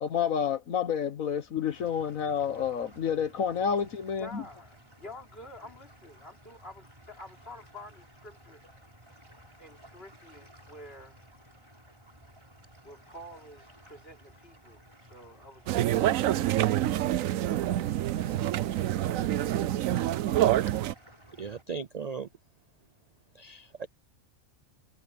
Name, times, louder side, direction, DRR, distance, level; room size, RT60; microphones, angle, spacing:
voice 1, 0.0-4.4, left 7 dB, 75° left, 1.5 m, -29 dB
sound 1, 1.7-21.6, equal, 20° right, 4.7 m, -56 dB
voice 2, 4.2-8.6 9.6-11.3 12.8-17.2, left 1 dB, 45° left, 4.1 m, -49 dB
sound 2, 15.7-20.9, right 13 dB, 75° right, 1.0 m, -27 dB
voice 3, 21.4-22.3 23.3-23.9, right 5 dB, 50° right, 0.4 m, -37 dB
omnidirectional pair, 1.4 m